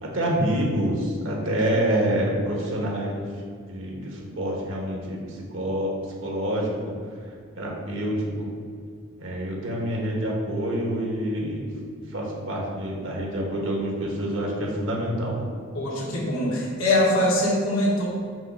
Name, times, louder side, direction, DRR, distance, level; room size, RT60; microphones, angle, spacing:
voice 1, 0.0-3.3 3.7-5.9 6.2-6.9 7.6-8.5 9.2-11.7 12.1-15.4, right 1 dB, 70° right, -2 dB, 1.3 m, -27 dB
voice 2, 15.7-18.1, left 1 dB, 90° left, -4 dB, 1.5 m, -23 dB
5.4 x 3.2 x 5.4 m, 2.1 s
head